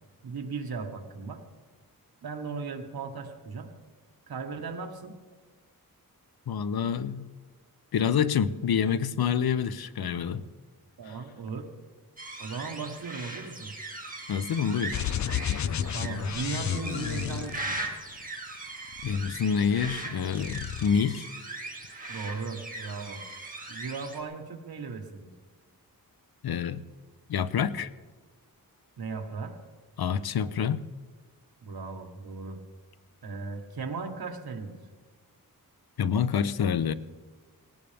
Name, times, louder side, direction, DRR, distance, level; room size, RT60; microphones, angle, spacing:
voice 1, 0.2-1.4 2.2-3.7 4.3-5.2 10.1-10.4 11.0-11.7 12.4-13.7 15.9-17.8 22.1-23.2 23.7-25.3 29.0-29.6 31.6-32.6 33.2-34.8, right 4 dB, 85° right, 4 dB, 1.7 m, -37 dB
voice 2, 6.5-7.3 7.9-10.4 14.3-15.0 19.0-21.2 26.4-26.8 27.3-27.9 30.0-30.8 36.0-36.9, left 7 dB, 85° left, 14 dB, 0.7 m, -27 dB
sound 1, 12.2-24.2, right 2 dB, 25° right, 1.9 m, -39 dB
sound 2, 14.9-18.2 18.9-20.0 20.3-20.9, left 9 dB, 50° left, 0.4 m, -32 dB
18.5 x 18.5 x 3.5 m, 1.4 s
wide cardioid pair, 160°, 36 cm